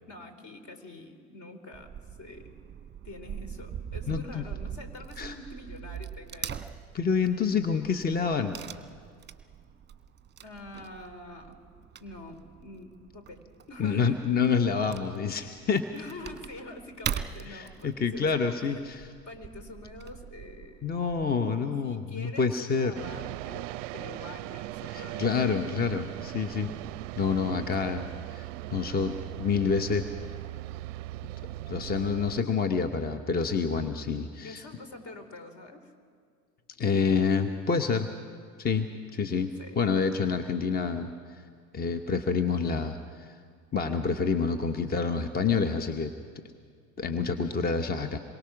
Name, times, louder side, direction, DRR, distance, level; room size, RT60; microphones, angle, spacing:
voice 1, 0.1-1.9 2.2-2.5 3.0-6.6 10.4-11.6 12.0-14.2 15.9-19.0 19.3-20.9 21.8-25.3 27.8-27.9 34.4-35.9 39.6-39.8, left 2 dB, 40° left, 8 dB, 3.3 m, -45 dB
Wood / Tearing, 1.7-21.3, right 8 dB, 25° right, 1.2 m, -42 dB
voice 2, 4.1-4.4 5.2-5.3 6.9-8.6 13.8-15.9 17.5-19.0 20.8-22.9 24.9-26.7 27.2-30.1 31.7-34.6 36.8-38.1 38.6-41.4 41.7-43.3 43.7-46.1 47.0-48.2, left 5 dB, 20° left, 8 dB, 1.2 m, -28 dB
sound 1, 22.9-32.4, right 17 dB, 60° right, 0.5 m, -39 dB
27.0 x 23.0 x 6.0 m, 2.1 s
figure-of-eight pair, 75°, 44 cm